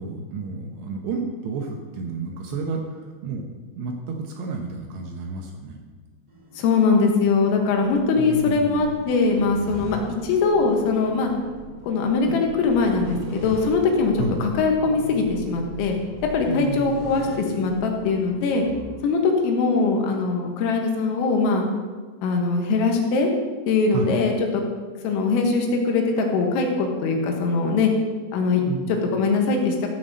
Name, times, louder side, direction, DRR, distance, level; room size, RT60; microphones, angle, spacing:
voice 1, 0.0-3.5 3.8-5.8 8.2-8.8 14.2-14.4 16.5-17.1 23.9-24.1 28.7-29.0, right 3 dB, 75° right, 2 dB, 2.7 m, -31 dB
sound 1, 6.3-18.9, left 1 dB, 30° right, 4.6 m, -40 dB
voice 2, 6.6-10.0 10.2-11.3 11.8-14.2 14.6-16.0 16.3-18.6 19.0-21.6 22.2-23.3 23.7-24.3 25.0-27.9 28.3-28.6 29.1-29.8, left 4 dB, 85° left, 2 dB, 4.1 m, -21 dB
14.0 x 5.8 x 6.4 m, 1.4 s
omnidirectional pair, 5.8 m